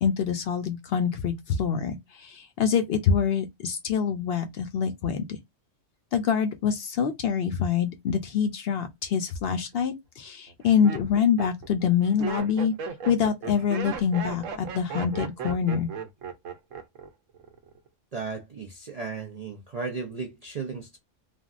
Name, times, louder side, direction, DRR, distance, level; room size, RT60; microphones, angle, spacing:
voice 1, 0.0-5.4 6.1-12.7 13.1-15.9, left 7 dB, 65° left, 0.7 m, -25 dB
Laughter, 9.4-9.8 10.5-17.1 17.3-17.9, right 6 dB, 90° right, 1.1 m, -36 dB
voice 2, 18.1-21.0, right 4 dB, 55° right, 0.4 m, -35 dB
3.4 x 2.2 x 2.4 m
omnidirectional pair, 1.3 m